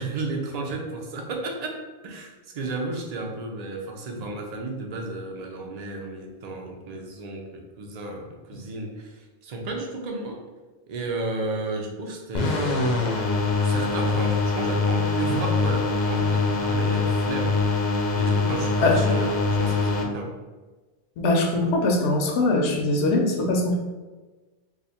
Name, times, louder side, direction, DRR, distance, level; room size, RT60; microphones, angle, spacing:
voice 1, 0.0-10.4 10.9-13.2 13.5-17.6 18.1-20.3, right 2 dB, 50° right, 1 dB, 0.5 m, -33 dB
sound 1, 12.3-20.0, left 3 dB, 55° left, 0.6 m, -23 dB
voice 2, 21.2-23.9, left 2 dB, 85° left, 1 dB, 0.9 m, -22 dB
2.5 x 2.4 x 4.0 m, 1.2 s
omnidirectional pair, 1.1 m